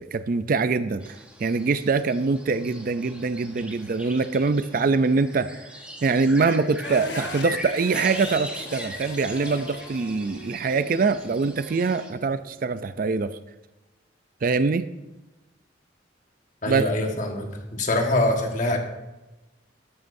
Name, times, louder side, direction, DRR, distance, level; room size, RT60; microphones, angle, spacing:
voice 1, 0.0-5.6 6.0-13.4 14.4-14.9 16.7-16.8, right 4 dB, 50° right, 12 dB, 0.4 m, -24 dB
sound 1, 1.0-12.1, equal, 5° right, 1.3 m, -40 dB
sound 2, 6.8-12.9, left 3 dB, 65° left, 1.1 m, -41 dB
voice 2, 16.6-18.8, left 1 dB, 40° left, 3 dB, 1.5 m, -24 dB
13.0 x 11.0 x 2.6 m, 1.1 s
head